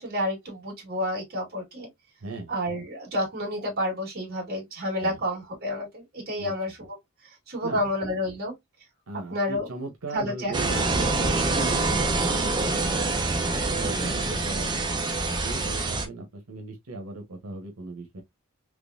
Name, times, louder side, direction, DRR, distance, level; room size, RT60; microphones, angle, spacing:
voice 1, 0.0-1.9 2.5-6.9 7.5-8.6 9.3-9.7 10.1-10.5 13.8-14.3, left 1 dB, 45° right, 2.1 m, -30 dB
voice 2, 9.1-13.1 13.7-14.8 15.2-18.2, right 3 dB, 90° right, 1.0 m, -37 dB
sound 1, 10.5-16.0, right 3 dB, 20° right, 0.7 m, -26 dB
3.7 x 3.0 x 2.5 m
head